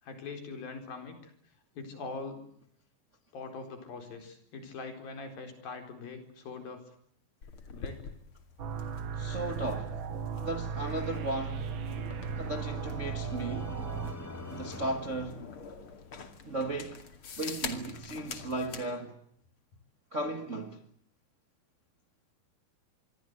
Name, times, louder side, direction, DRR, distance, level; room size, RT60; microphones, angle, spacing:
voice 1, 0.0-2.4 3.3-7.0 7.7-8.1, left 4 dB, 70° left, 6.0 m, -43 dB
sound 1, 7.4-18.9, left 5 dB, 40° left, 2.8 m, -45 dB
sound 2, 8.6-14.1, right 7 dB, 65° right, 1.2 m, -36 dB
voice 2, 9.1-10.0 10.3-11.7 12.3-13.8 14.5-15.5 16.4-17.1 17.4-19.2 20.1-20.8, right 2 dB, 30° right, 1.3 m, -36 dB
sound 3, 11.6-16.0, left 1 dB, 10° left, 0.8 m, -46 dB
26.5 x 23.0 x 8.1 m
omnidirectional pair, 4.3 m